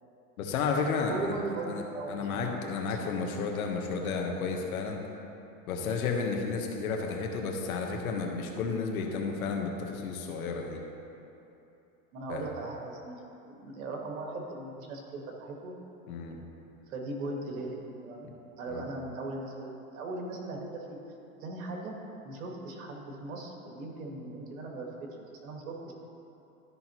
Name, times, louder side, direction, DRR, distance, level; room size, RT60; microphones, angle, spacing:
voice 1, 0.4-1.3 1.7-5.0 5.7-10.8 12.3-12.5 16.1-16.4 18.7-18.9, left 4 dB, 85° left, 2 dB, 1.2 m, -32 dB
voice 2, 1.0-3.2 12.1-15.8 16.9-18.3 18.6-21.0 21.4-21.9 22.2-25.9, right 2 dB, 75° right, 1 dB, 1.7 m, -39 dB
12.5 x 5.4 x 3.0 m, 2.9 s
supercardioid pair, 125°, 42 cm